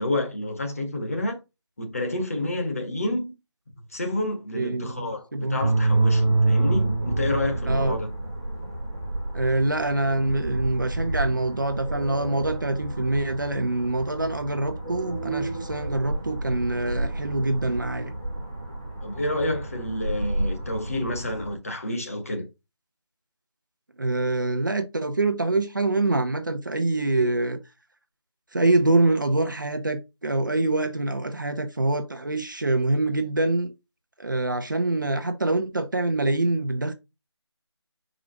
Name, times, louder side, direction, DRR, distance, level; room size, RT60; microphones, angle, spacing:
voice 1, 0.0-1.4 1.8-3.3 3.9-8.1 19.0-22.5, left 1 dB, 30° left, 1.5 m, -29 dB
voice 2, 4.5-5.6 7.7-8.0 9.3-18.1 24.0-27.6 28.5-33.7 34.2-36.9, right 2 dB, 45° right, 0.7 m, -25 dB
sound 1, 5.6-21.5, right 2 dB, 10° right, 0.6 m, -28 dB
5.7 x 5.0 x 3.8 m
figure-of-eight pair, 175°, 15 cm